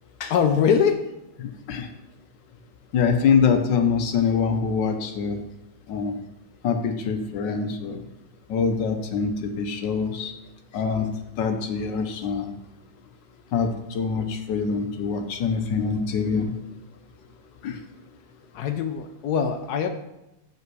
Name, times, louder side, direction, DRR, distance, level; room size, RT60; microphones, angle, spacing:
voice 1, 0.2-1.1 18.5-19.9, left 7 dB, 80° left, 7 dB, 0.8 m, -22 dB
voice 2, 1.4-1.9 2.9-5.4 5.9-6.2 6.6-8.0 8.5-10.3 10.7-11.1 11.4-12.5 13.5-16.5 17.6-17.8, left 6 dB, 65° left, 5 dB, 1.4 m, -24 dB
7.9 x 5.5 x 4.7 m, 0.92 s
omnidirectional pair, 2.3 m